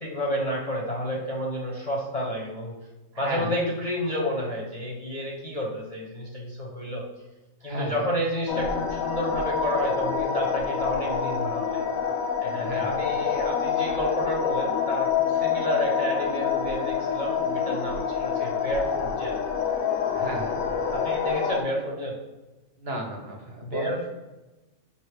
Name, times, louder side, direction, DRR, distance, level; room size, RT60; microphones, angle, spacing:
voice 1, 0.0-2.7 3.2-7.0 7.6-11.8 12.4-19.4 20.9-22.2 23.6-24.1, equal, 35° left, -3 dB, 0.6 m, -30 dB
voice 2, 3.1-3.5 7.6-8.0 12.5-12.9 20.1-20.5 22.8-23.9, right 2 dB, 55° right, 1 dB, 0.9 m, -33 dB
sound 1, 8.5-21.6, left 7 dB, 85° left, 1.0 m, -27 dB
5.3 x 2.7 x 3.2 m, 1.1 s
omnidirectional pair, 1.3 m